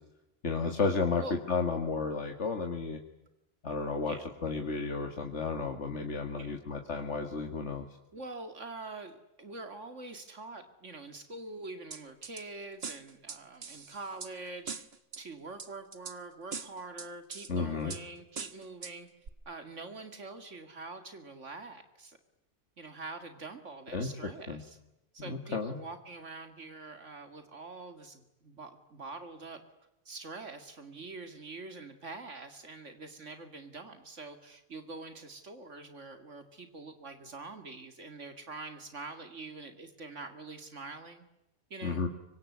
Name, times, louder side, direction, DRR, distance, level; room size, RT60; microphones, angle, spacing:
voice 1, 0.4-3.0 3.6-4.2 4.4-7.8 17.5-18.0 23.9-24.1 24.5-24.6 25.2-25.8 41.8-42.1, left 4 dB, 70° left, 4 dB, 2.3 m, -32 dB
voice 2, 8.1-14.9 15.2-19.1 19.5-22.2 22.8-24.8 25.1-29.6 30.1-41.2 41.7-42.0, right 3 dB, 80° right, 8 dB, 2.6 m, -45 dB
sound 1, 11.9-12.4 12.8-14.3 14.7-15.2 15.6-16.2 16.5-17.5 17.9-18.0 18.4-18.9 19.3-19.4, right 5 dB, 55° right, 1.7 m, -41 dB
25.5 x 24.5 x 9.4 m, 0.89 s
omnidirectional pair, 1.2 m